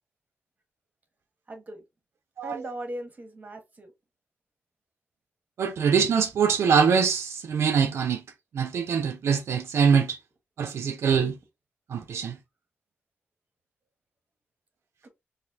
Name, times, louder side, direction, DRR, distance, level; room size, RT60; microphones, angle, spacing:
voice 1, 1.5-1.8 2.4-3.9 15.0-15.1, right 1 dB, 35° right, 1.2 m, -38 dB
voice 2, 2.4-2.7 5.6-8.2 8.5-10.2 10.6-11.3 11.9-12.4, right 6 dB, 80° right, 0.4 m, -23 dB
4.0 x 2.7 x 2.6 m
wide cardioid pair, 100°, 4 cm